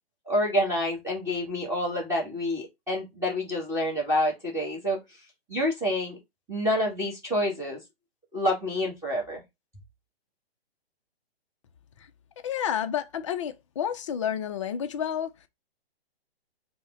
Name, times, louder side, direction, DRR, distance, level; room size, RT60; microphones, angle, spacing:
voice 1, 0.2-5.0 5.5-6.2 6.5-7.8 8.3-9.4, left 1 dB, 10° right, 1.3 m, -28 dB
voice 2, 12.4-15.5, left 9 dB, 30° left, 0.4 m, -30 dB
5.5 x 2.1 x 3.7 m
hypercardioid pair, 140°, 31 cm